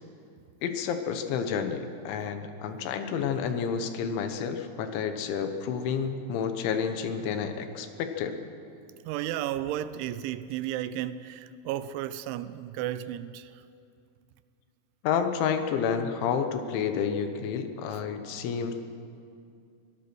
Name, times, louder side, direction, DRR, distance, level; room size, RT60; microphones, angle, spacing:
voice 1, 0.6-8.4 15.0-18.7, left 7 dB, 80° left, 3.4 m, -30 dB
voice 2, 9.1-13.6 16.3-16.4 17.9-18.0, right 12 dB, 85° right, 2.9 m, -33 dB
24.5 x 17.0 x 6.2 m
omnidirectional pair, 5.5 m